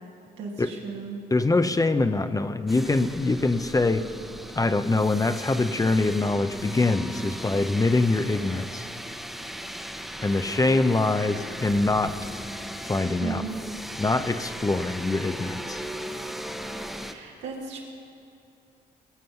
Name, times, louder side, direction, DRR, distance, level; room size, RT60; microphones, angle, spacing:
voice 1, 0.4-1.2 10.1-10.2 13.2-13.6 17.0-17.8, right 5 dB, 85° right, -2 dB, 2.4 m, -36 dB
voice 2, 1.3-4.1 4.6-8.9 10.2-12.2 12.8-13.4 14.0-15.8, left 2 dB, 20° left, 10 dB, 0.6 m, -24 dB
sound 1, 2.7-17.1, equal, ahead, 1.0 m, -37 dB
20.5 x 7.7 x 5.7 m, 2.5 s
supercardioid pair, 70°, 19 cm